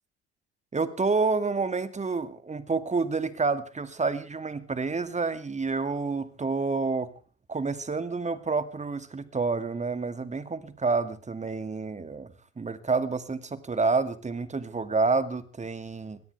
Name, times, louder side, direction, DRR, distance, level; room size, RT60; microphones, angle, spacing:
voice 1, 0.7-7.1 7.5-16.2, right 4 dB, 20° right, 11 dB, 2.2 m, -29 dB
23.5 x 17.5 x 3.4 m, 0.37 s
hypercardioid pair, 70°, 32 cm